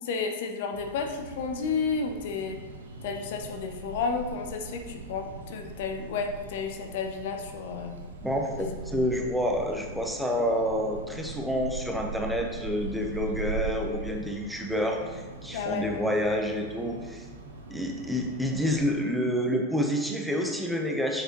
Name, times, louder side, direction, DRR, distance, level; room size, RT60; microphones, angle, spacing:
voice 1, 0.0-2.6 3.0-7.9 8.6-9.0 15.5-15.9, left 5 dB, 55° left, 4 dB, 0.8 m, -32 dB
sound 1, 0.7-18.8, right 4 dB, 70° right, 1.0 m, -40 dB
voice 2, 8.2-17.2 17.7-21.2, equal, ahead, 1 dB, 0.9 m, -28 dB
7.3 x 6.5 x 3.1 m, 1.5 s
figure-of-eight pair, 90°, 0 cm